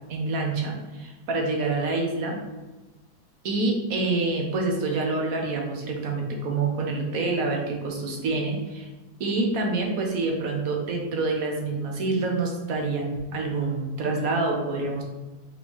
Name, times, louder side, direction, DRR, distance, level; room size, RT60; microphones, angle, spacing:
voice 1, 0.1-2.4 3.4-8.9 9.2-15.0, right 3 dB, 65° right, 0 dB, 1.3 m, -27 dB
4.4 x 3.1 x 3.5 m, 1.2 s
omnidirectional pair, 1.7 m